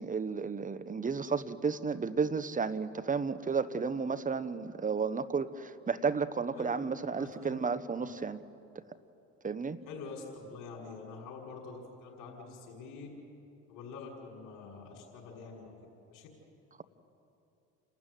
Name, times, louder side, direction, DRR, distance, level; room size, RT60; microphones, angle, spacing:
voice 1, 0.0-8.4 9.4-9.8, right 5 dB, 25° right, 14 dB, 1.1 m, -32 dB
voice 2, 7.2-7.6 8.0-8.2 9.9-13.1 13.7-15.7 16.1-16.3, left 4 dB, 65° left, -3 dB, 5.8 m, -46 dB
29.5 x 13.0 x 9.3 m, 2.7 s
supercardioid pair, 80°, 34 cm